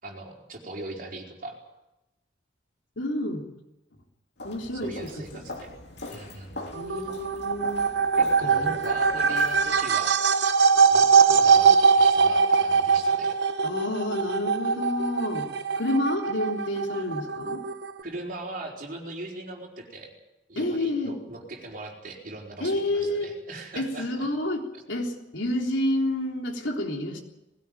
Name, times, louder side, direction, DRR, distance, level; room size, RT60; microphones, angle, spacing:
voice 1, 0.0-1.6 4.8-5.7 6.1-7.1 8.2-10.2 10.9-13.4 18.0-20.1 20.5-24.3, right 2 dB, 45° right, 0 dB, 4.6 m, -40 dB
voice 2, 3.0-3.4 4.4-5.4 6.7-7.8 8.4-8.8 13.6-15.5 15.8-17.6 20.5-21.2 22.6-23.3 23.7-27.2, left 1 dB, 80° left, 2 dB, 3.5 m, -29 dB
Walk footsteps, 4.4-9.9, left 2 dB, 60° left, 3.3 m, -42 dB
sound 1, 6.7-18.0, right 5 dB, 60° right, 1.0 m, -22 dB
20.0 x 17.0 x 9.2 m, 0.96 s
head